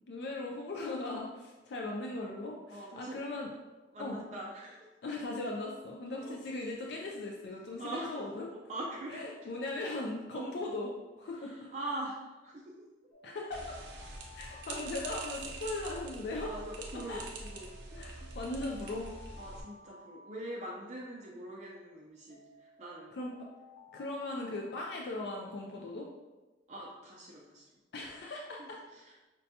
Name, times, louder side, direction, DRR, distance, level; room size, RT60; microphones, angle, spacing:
voice 1, 0.1-3.5 4.0-4.2 5.0-8.5 9.1-11.7 13.2-13.7 14.3-16.5 16.9-17.3 18.0-19.1 23.1-23.3 23.9-26.1 27.9-28.8, left 2 dB, 65° left, -1 dB, 0.4 m, -38 dB
voice 2, 2.7-3.2 3.9-4.9 6.1-6.4 7.8-8.2 8.5-9.2 10.3-10.5 11.4-12.7 14.7-14.9 16.5-18.3 19.4-23.2 26.7-27.7 28.6-29.3, right 1 dB, 40° right, -4 dB, 0.4 m, -43 dB
sound 1, 13.1-16.3 17.4-21.2 22.3-25.5, left 3 dB, 90° left, 0.8 m, -57 dB
sound 2, 13.5-19.6, right 3 dB, 85° right, 0.6 m, -45 dB
5.1 x 2.2 x 2.7 m, 1.2 s
head